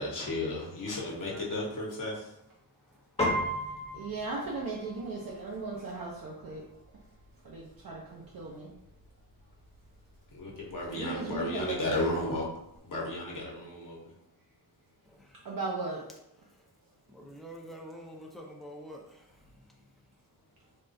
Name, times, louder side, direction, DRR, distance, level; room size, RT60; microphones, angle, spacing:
voice 1, 0.0-2.3 10.3-12.4 12.8-14.1, left 1 dB, 55° left, -4 dB, 1.0 m, -34 dB
voice 2, 2.8-4.1 5.4-5.5 5.7-5.9 15.0-15.4 16.5-16.6 17.1-19.9, equal, ahead, -2 dB, 0.5 m, -49 dB
Piano, 3.2-12.8, equal, 15° left, 0.9 m, -40 dB
voice 3, 3.9-6.6 7.4-8.7 10.9-12.0 15.4-16.0, right 3 dB, 60° right, -3 dB, 0.6 m, -37 dB
3.5 x 2.4 x 2.6 m, 0.84 s
wide cardioid pair, 125°, 39 cm